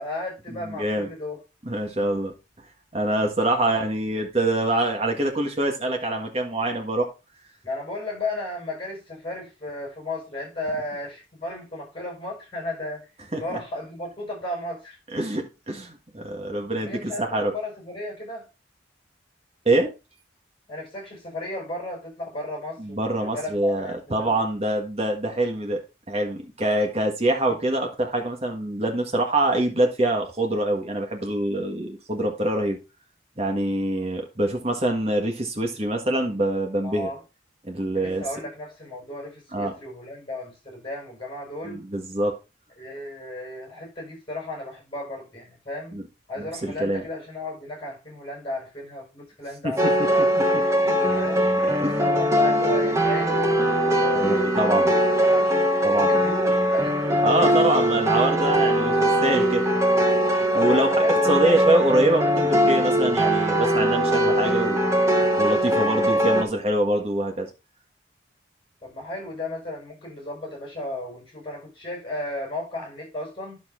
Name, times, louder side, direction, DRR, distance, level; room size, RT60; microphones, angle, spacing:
voice 1, 0.0-1.4 7.6-13.1 13.4-15.0 16.7-18.5 20.7-24.4 36.8-37.2 37.9-41.8 42.8-46.0 46.3-50.2 50.8-51.5 52.0-57.8 60.5-61.6 68.8-73.6, left 1 dB, 25° left, -1 dB, 5.4 m, -34 dB
voice 2, 0.5-1.1 1.6-2.3 2.9-7.1 13.3-13.6 15.1-17.5 19.6-19.9 22.8-25.8 26.1-32.8 33.4-37.1 37.6-38.2 39.5-39.7 41.6-42.3 45.9-46.0 46.4-47.0 49.6-49.9 50.2-50.3 50.5-50.6 51.6-52.1 54.1-54.9 55.8-56.2 57.2-59.6 60.0-60.2 60.5-64.8 65.4-67.5, right 1 dB, 35° right, 2 dB, 1.6 m, -25 dB
sound 1, 49.8-66.4, equal, 15° right, 1.0 m, -21 dB
10.5 x 7.0 x 2.6 m, 0.28 s
head